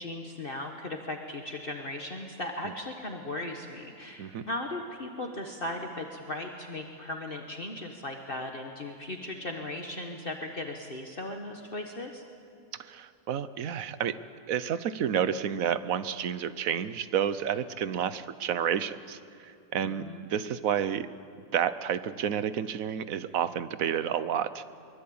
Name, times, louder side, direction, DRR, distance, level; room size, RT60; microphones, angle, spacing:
voice 1, 0.0-12.2 19.8-20.3, left 1 dB, 40° left, 2 dB, 1.6 m, -37 dB
voice 2, 12.9-14.2 14.5-21.1 21.5-24.6, right 8 dB, 75° right, 14 dB, 1.3 m, -30 dB
24.0 x 21.5 x 8.7 m, 2.5 s
omnidirectional pair, 1.5 m